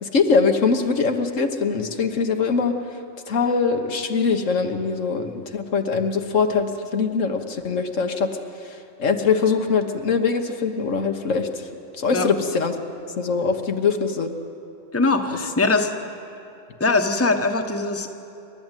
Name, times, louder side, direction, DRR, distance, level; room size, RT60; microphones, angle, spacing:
voice 1, 0.0-2.7 3.3-8.3 8.6-11.7 12.0-12.8 13.2-14.3, left 5 dB, 75° left, 5 dB, 1.6 m, -22 dB
voice 2, 14.9-15.9 16.8-18.1, left 3 dB, 10° left, 4 dB, 1.1 m, -21 dB
28.0 x 12.0 x 9.0 m, 2.8 s
omnidirectional pair, 1.3 m